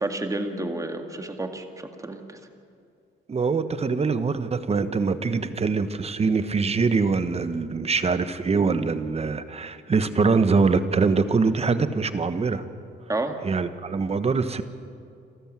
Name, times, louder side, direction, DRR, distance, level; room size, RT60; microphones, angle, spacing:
voice 1, 0.0-2.4 5.3-5.4 13.1-13.4, right 2 dB, 15° right, 5 dB, 1.9 m, -30 dB
voice 2, 3.3-12.6 13.4-14.6, right 4 dB, 30° right, 11 dB, 1.2 m, -23 dB
28.0 x 13.5 x 7.6 m, 2.4 s
cardioid pair, 90°, 20 cm